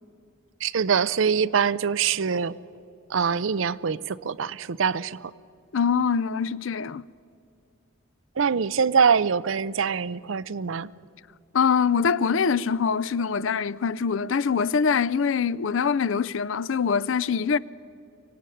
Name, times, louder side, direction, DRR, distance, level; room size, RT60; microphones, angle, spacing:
voice 1, 0.6-2.6 3.1-5.3 8.4-10.9, right 6 dB, 70° right, 0.5 m, -24 dB
voice 2, 5.7-7.0 11.5-17.6, left 6 dB, 65° left, 0.5 m, -24 dB
24.5 x 17.5 x 9.2 m
head